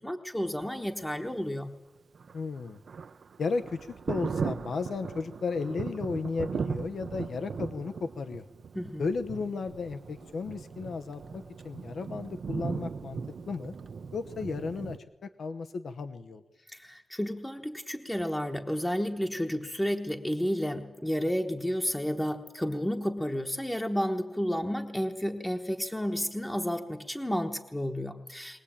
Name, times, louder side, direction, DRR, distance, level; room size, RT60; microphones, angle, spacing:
voice 1, 0.0-1.7 8.7-9.1 16.7-28.6, equal, 5° left, 3 dB, 1.1 m, -31 dB
Thunder, 2.1-15.0, right 5 dB, 65° right, 0.7 m, -38 dB
voice 2, 2.3-2.8 3.4-8.4 9.0-13.2 13.5-13.7 14.1-15.0 15.2-16.4, left 4 dB, 75° left, 9 dB, 1.0 m, -34 dB
22.0 x 18.5 x 8.6 m, 1.1 s
wide cardioid pair, 140°, 0 cm